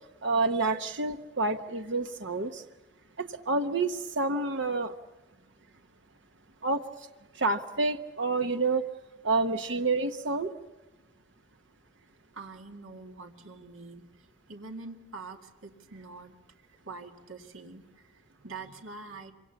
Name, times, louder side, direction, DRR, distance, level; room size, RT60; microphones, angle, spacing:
voice 1, 0.2-2.6 3.2-4.9 6.6-6.8 7.4-8.8 9.2-10.5, right 3 dB, 65° right, 6 dB, 1.0 m, -28 dB
voice 2, 12.3-16.3 16.9-19.3, right 3 dB, 85° right, 3 dB, 2.2 m, -45 dB
27.5 x 25.0 x 7.1 m, 1.1 s
head